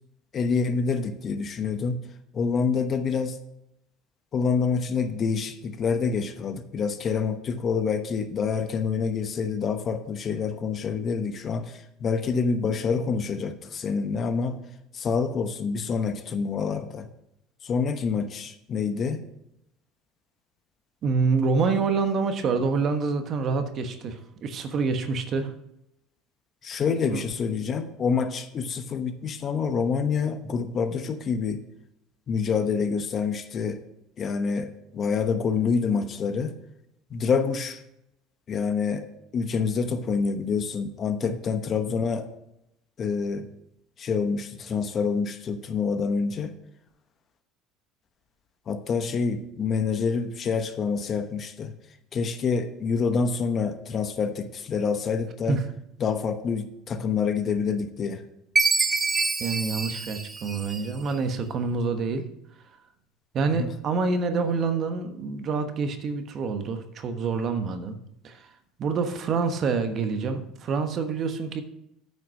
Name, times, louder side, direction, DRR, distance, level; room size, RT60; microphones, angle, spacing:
voice 1, 0.3-2.0 2.3-3.4 4.3-14.6 14.9-17.1 17.6-19.2 26.6-31.6 32.3-33.8 34.2-36.5 37.1-37.8 38.5-39.0 39.3-42.3 43.0-43.5 44.0-46.5 48.7-51.7 52.1-55.6 56.0-58.2 63.6-63.7, left 5 dB, 40° left, 9 dB, 0.9 m, -27 dB
voice 2, 21.0-25.5 27.1-27.2 41.2-41.3 55.5-55.7 59.4-62.2 63.3-68.0 68.2-68.5 68.8-71.6, right 4 dB, 45° right, 8 dB, 1.2 m, -27 dB
Chime, 58.6-61.1, right 4 dB, 20° right, 1.0 m, -26 dB
9.1 x 5.8 x 6.4 m, 0.82 s
supercardioid pair, 110°, 0 cm